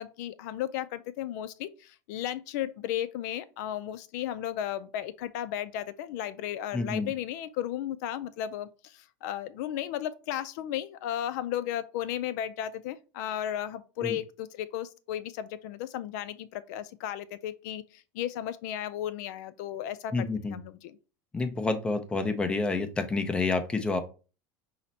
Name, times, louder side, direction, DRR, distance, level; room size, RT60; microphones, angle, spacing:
voice 1, 0.0-21.0, left 11 dB, 70° left, 0.4 m, -35 dB
voice 2, 6.7-7.1 14.0-14.2 20.1-20.6 21.3-24.0, left 3 dB, 10° left, 0.5 m, -29 dB
5.7 x 2.1 x 3.9 m
supercardioid pair, 150°, 10 cm